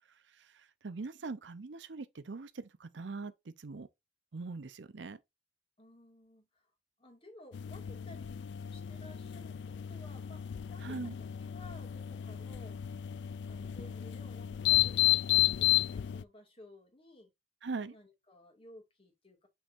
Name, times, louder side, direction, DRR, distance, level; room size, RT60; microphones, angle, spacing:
voice 1, 0.3-3.9 4.3-5.2 10.8-11.2 17.6-17.9, right 3 dB, 85° right, 0.6 m, -42 dB
voice 2, 5.8-6.7 7.0-8.4 8.7-12.8 13.5-17.3 17.9-19.5, left 1 dB, 30° left, 2.1 m, -56 dB
sound 1, 7.5-16.2, left 14 dB, 75° left, 0.3 m, -32 dB
6.3 x 6.1 x 2.6 m
head